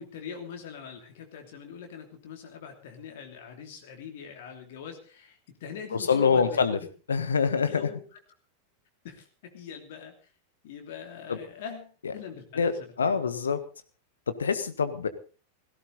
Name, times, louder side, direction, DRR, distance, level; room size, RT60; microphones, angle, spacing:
voice 1, 0.0-6.6 7.7-8.2 9.0-10.1 10.6-13.2, left 7 dB, 55° left, 4 dB, 3.0 m, -43 dB
voice 2, 6.1-6.8 7.1-7.7 11.3-11.4 12.0-12.1 12.6-12.7 13.0-13.6 14.3-15.1, left 6 dB, 70° left, 13 dB, 1.4 m, -25 dB
17.0 x 16.5 x 4.0 m, 0.37 s
figure-of-eight pair, 90°, 0 cm